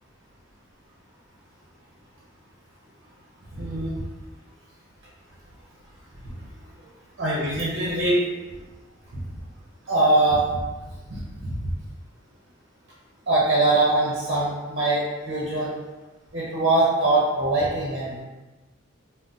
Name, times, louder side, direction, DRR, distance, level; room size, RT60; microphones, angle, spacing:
voice 1, 3.5-3.9 6.8-6.9 7.2-8.2 9.1-9.2 9.9-10.6 11.1-11.7 13.3-15.7 16.3-18.2, right 2 dB, 55° right, -6 dB, 0.7 m, -22 dB
4.0 x 2.1 x 2.5 m, 1.1 s
head